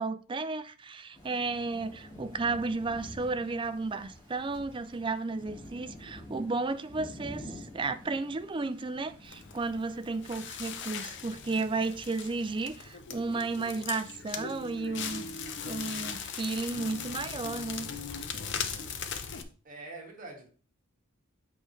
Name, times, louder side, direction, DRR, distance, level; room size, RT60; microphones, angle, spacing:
voice 1, 0.0-15.3 15.6-17.9, right 3 dB, 25° right, 0.4 m, -33 dB
Thunder / Rain, 1.1-12.9, equal, 20° left, 3.3 m, -49 dB
Crackle, 9.2-19.4, left 6 dB, 55° left, 0.7 m, -39 dB
voice 2, 19.6-20.5, right 2 dB, 40° right, 1.8 m, -44 dB
7.8 x 5.0 x 3.2 m
head